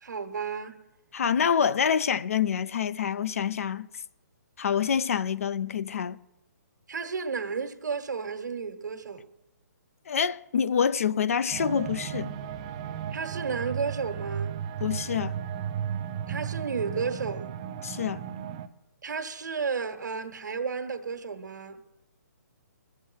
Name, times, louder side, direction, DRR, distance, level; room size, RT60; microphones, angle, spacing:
voice 1, 0.0-0.8 6.9-9.2 13.1-14.6 16.3-17.5 19.0-21.8, right 5 dB, 90° right, 1.3 m, -32 dB
voice 2, 1.1-3.9 4.6-6.2 10.1-12.3 14.8-15.3 17.8-18.2, left 7 dB, 50° left, 0.5 m, -26 dB
sound 1, 11.5-18.7, right 9 dB, 20° right, 0.4 m, -35 dB
20.5 x 7.4 x 6.3 m
hypercardioid pair, 170°, 10 cm